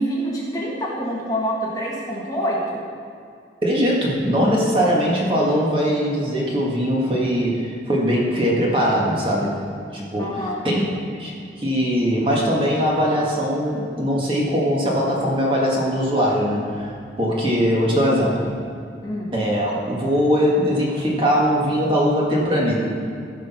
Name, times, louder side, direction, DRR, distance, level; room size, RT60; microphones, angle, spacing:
voice 1, 0.0-2.8 10.2-10.6 19.0-19.3, equal, 20° left, -4 dB, 1.4 m, -26 dB
voice 2, 3.6-9.6 9.9-10.9 11.2-16.9 17.2-18.5 19.3-23.0, equal, 30° right, -3 dB, 1.9 m, -21 dB
15.0 x 5.2 x 5.8 m, 2.4 s
head